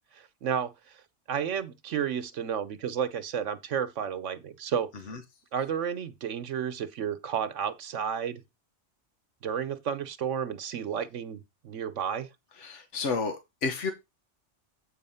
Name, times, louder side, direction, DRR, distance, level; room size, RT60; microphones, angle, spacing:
voice 1, 0.1-1.0 1.3-4.9 5.5-8.4 9.4-12.3, right 8 dB, 90° right, 1.2 m, -32 dB
voice 2, 12.6-13.9, left 4 dB, 80° left, 1.5 m, -31 dB
8.4 x 4.3 x 5.6 m
omnidirectional pair, 1.2 m